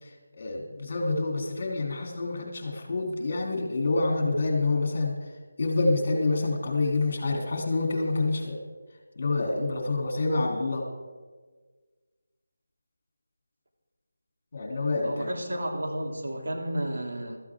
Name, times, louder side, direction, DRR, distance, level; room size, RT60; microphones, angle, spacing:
voice 1, 0.4-5.1 5.6-8.6 9.2-10.8 14.5-15.3, left 3 dB, 45° left, 1 dB, 3.0 m, -27 dB
voice 2, 15.0-17.4, right 1 dB, 70° right, 1 dB, 2.7 m, -32 dB
14.5 x 13.5 x 3.7 m, 1.4 s
figure-of-eight pair, 170°, 0 cm